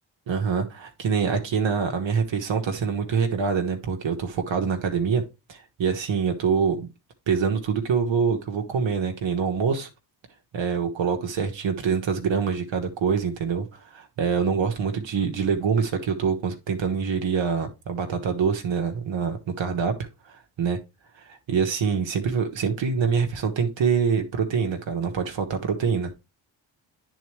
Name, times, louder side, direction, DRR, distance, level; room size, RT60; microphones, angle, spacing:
voice 1, 0.3-5.2 5.5-6.9 7.3-9.9 10.5-20.8 21.1-26.1, right 6 dB, 65° right, 4 dB, 1.1 m, -25 dB
9.2 x 4.0 x 3.2 m, 0.27 s
supercardioid pair, 45°, 48 cm